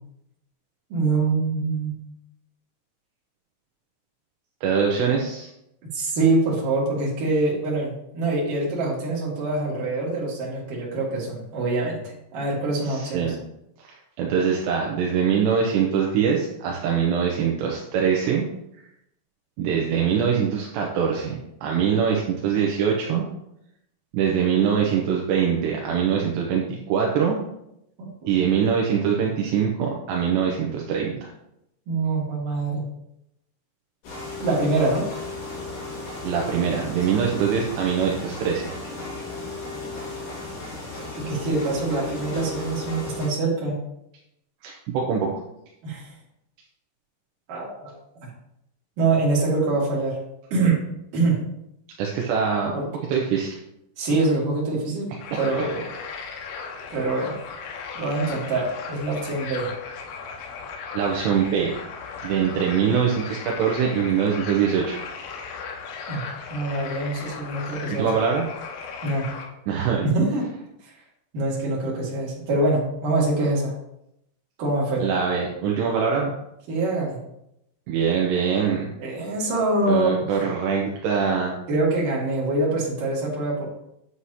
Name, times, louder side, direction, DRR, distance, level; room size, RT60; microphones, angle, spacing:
voice 1, 0.9-1.9 5.9-13.3 28.0-28.1 28.4-28.5 31.9-32.8 34.4-35.1 41.2-43.8 45.8-46.1 47.5-47.9 48.2-48.3 49.0-50.2 50.5-50.8 51.1-51.4 52.7-53.0 54.0-55.1 55.4-55.9 56.9-57.4 57.9-59.7 66.1-66.2 66.5-68.1 69.0-69.3 70.0-70.5 71.3-73.8 74.6-75.1 76.7-77.2 79.0-80.1 81.7-83.7, right 2 dB, 50° right, -5 dB, 3.2 m, -24 dB
voice 2, 4.6-5.5 12.9-13.4 13.8-18.5 19.6-23.3 24.1-27.4 28.3-31.3 36.2-38.7 44.6-45.3 52.0-52.7 53.1-53.6 60.9-61.7 62.2-65.0 68.0-68.5 69.7-70.1 75.0-76.3 77.9-78.9 79.9-81.6, right 7 dB, 80° right, -1 dB, 2.6 m, -23 dB
sound 1, 34.0-43.3, left 2 dB, 70° left, 5.5 m, -35 dB
sound 2, 55.2-69.5, left 5 dB, 85° left, 3.7 m, -37 dB
9.8 x 7.9 x 2.9 m, 0.81 s
omnidirectional pair, 5.9 m